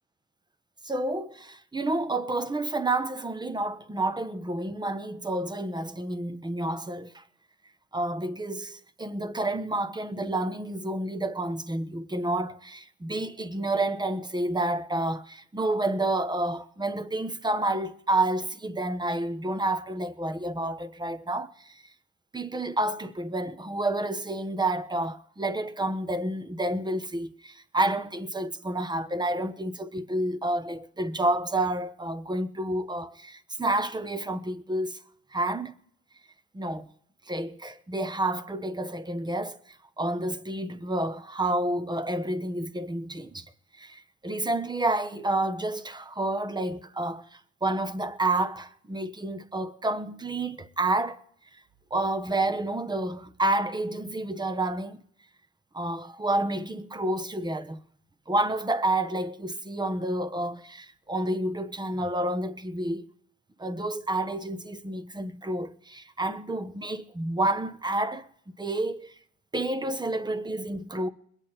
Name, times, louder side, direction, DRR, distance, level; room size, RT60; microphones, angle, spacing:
voice 1, 0.8-7.2 7.9-21.8 22.3-35.0 35.3-35.7 36.5-36.9 37.3-43.4 43.8-51.2 51.9-55.0 55.7-57.8 58.3-63.1 63.6-68.3 68.6-69.1 69.5-71.1, right 1 dB, 15° right, 1.0 m, -29 dB
21.5 x 8.9 x 4.3 m
cardioid pair, 90°, 30 cm